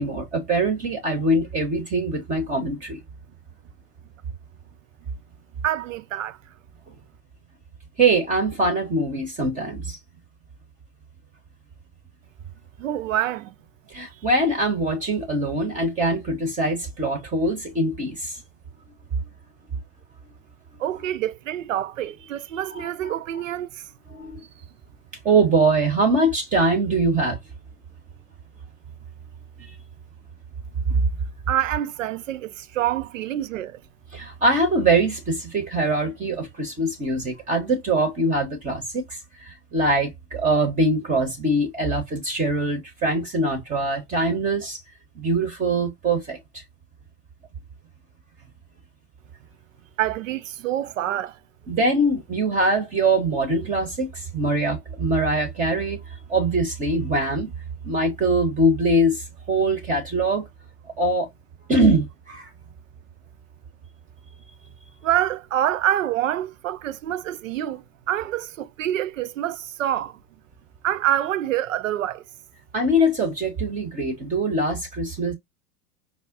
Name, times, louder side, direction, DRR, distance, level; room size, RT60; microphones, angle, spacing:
voice 1, 0.0-3.0 8.0-10.0 13.9-18.4 22.7-23.1 24.1-24.4 25.2-27.4 34.1-44.8 45.2-46.6 51.7-56.0 56.3-57.5 57.8-60.5 61.0-61.3 61.7-62.5 72.7-75.3, right 2 dB, 15° right, 0.8 m, -23 dB
voice 2, 5.6-6.4 12.8-13.5 20.8-23.8 31.5-33.8 50.0-51.4 65.0-70.2 70.8-72.2, right 12 dB, 55° right, 0.5 m, -26 dB
4.8 x 2.2 x 2.4 m
figure-of-eight pair, 100°, 47 cm